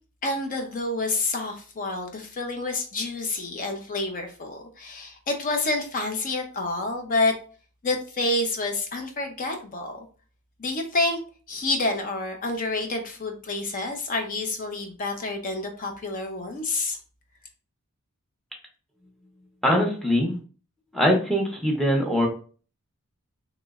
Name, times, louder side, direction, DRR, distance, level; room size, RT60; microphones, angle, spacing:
voice 1, 0.2-7.3 7.8-10.0 10.6-11.2 11.5-17.0, left 2 dB, 35° left, 4 dB, 0.5 m, -28 dB
voice 2, 19.6-20.3 20.9-22.3, equal, ahead, 0 dB, 0.7 m, -22 dB
3.0 x 2.9 x 2.4 m, 0.38 s
head